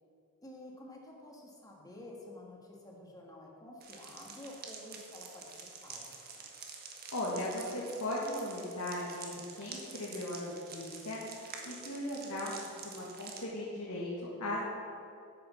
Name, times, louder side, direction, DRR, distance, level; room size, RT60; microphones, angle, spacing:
voice 1, 0.4-5.5 5.8-6.5, left 1 dB, 15° left, -1 dB, 1.7 m, -50 dB
sound 1, 3.8-13.4, right 5 dB, 45° right, 1.4 m, -48 dB
voice 2, 7.1-11.2 11.7-14.1 14.4-14.6, left 1 dB, 80° left, -6 dB, 1.9 m, -37 dB
9.4 x 6.7 x 7.4 m, 2.5 s
head